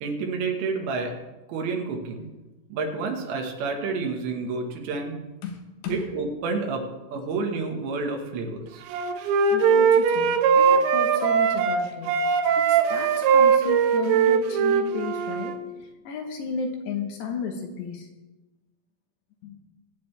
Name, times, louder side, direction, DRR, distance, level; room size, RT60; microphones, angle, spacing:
voice 1, 0.0-1.1 1.5-2.3 2.7-5.2 5.9-6.8 7.1-8.8, right 4 dB, 70° right, 1 dB, 3.5 m, -29 dB
voice 2, 5.4-6.0 9.5-12.2 12.6-18.1 19.4-19.6, left 5 dB, 70° left, 3 dB, 2.9 m, -34 dB
Wind instrument woodwind instrument, 8.9-11.8 12.1-15.6, right 6 dB, 90° right, 3.4 m, -20 dB
22.0 x 9.4 x 3.3 m, 1.1 s
omnidirectional pair, 5.6 m